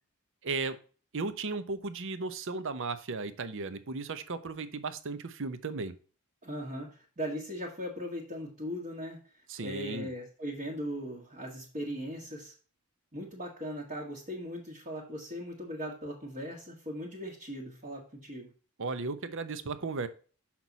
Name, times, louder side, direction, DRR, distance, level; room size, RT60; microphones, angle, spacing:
voice 1, 0.4-0.8 1.1-5.9 9.5-10.1 18.8-20.1, right 3 dB, 60° right, 12 dB, 0.7 m, -35 dB
voice 2, 6.4-9.2 9.6-12.5 13.1-18.5, equal, 35° right, -4 dB, 1.5 m, -39 dB
6.0 x 5.9 x 4.0 m, 0.39 s
head